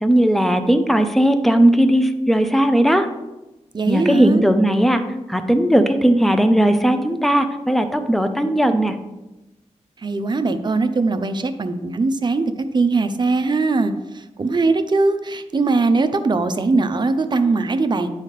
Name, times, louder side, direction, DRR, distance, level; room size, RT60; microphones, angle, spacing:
voice 1, 0.0-3.1 3.9-5.0 5.3-9.0, right 1 dB, ahead, 8 dB, 0.7 m, -17 dB
voice 2, 3.7-4.4 10.0-18.1, right 3 dB, 35° right, 8 dB, 0.6 m, -20 dB
9.9 x 4.1 x 3.3 m, 1.0 s
cardioid pair, 65°, 12 cm